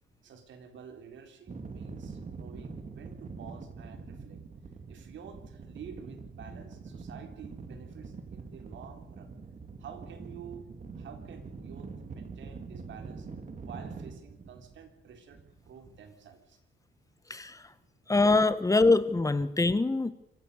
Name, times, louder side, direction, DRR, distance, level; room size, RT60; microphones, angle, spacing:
voice 1, 0.2-4.4 4.9-9.3 9.8-13.3 13.6-15.4 15.6-16.6 17.3-17.5 17.8-17.9, right 7 dB, 70° right, 6 dB, 3.8 m, -49 dB
sound 1, 1.5-16.0, right 4 dB, 40° right, 3.0 m, -44 dB
voice 2, 17.3-17.7 18.1-20.1, left 3 dB, 15° left, 13 dB, 1.5 m, -24 dB
25.5 x 15.0 x 6.8 m, 0.88 s
cardioid pair, 90°, 20 cm